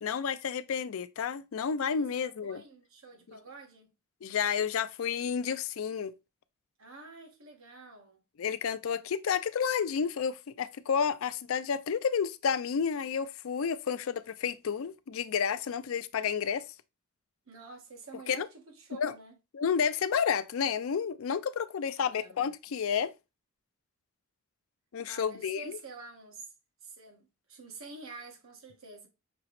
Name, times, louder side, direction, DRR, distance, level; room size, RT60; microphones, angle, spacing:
voice 1, 0.0-2.6 4.2-6.1 8.4-16.6 18.3-18.5 18.9-19.1 19.5-23.1 24.9-25.8, left 7 dB, 70° left, 0.4 m, -31 dB
voice 2, 2.0-3.9 6.8-8.2 17.5-19.4 22.0-22.4 25.1-26.5 26.8-29.1, right 3 dB, 70° right, 1.3 m, -48 dB
6.0 x 2.9 x 3.0 m
head